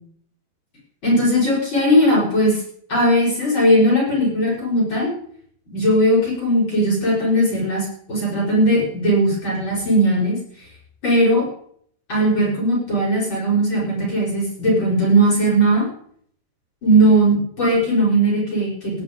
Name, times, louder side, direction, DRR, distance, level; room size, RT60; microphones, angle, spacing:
voice 1, 1.0-2.6 2.9-5.1 5.7-10.4 11.0-11.4 12.1-15.8 16.8-19.0, right 1 dB, 30° left, -4 dB, 6.4 m, -18 dB
19.5 x 11.0 x 5.3 m, 0.63 s
omnidirectional pair, 4.2 m